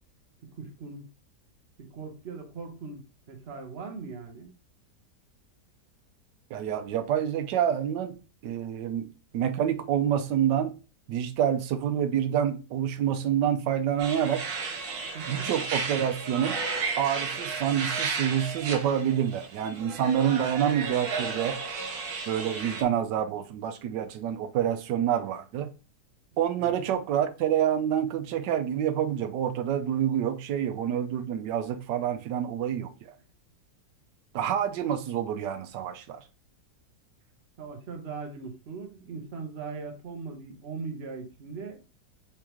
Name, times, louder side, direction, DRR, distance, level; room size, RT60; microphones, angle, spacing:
voice 1, 0.5-1.0 1.9-3.0 3.3-4.5 15.1-15.5 26.6-26.8 37.6-41.8, right 4 dB, 45° right, 1.1 m, -39 dB
voice 2, 6.5-8.1 8.4-9.1 9.3-10.7 11.1-14.4 15.3-16.6 17.0-21.6 22.3-25.7 26.4-32.9 34.3-36.2, right 9 dB, 85° right, 1.3 m, -27 dB
sound 1, 14.0-22.8, right 4 dB, 65° right, 1.2 m, -33 dB
4.3 x 3.6 x 3.0 m
omnidirectional pair, 1.8 m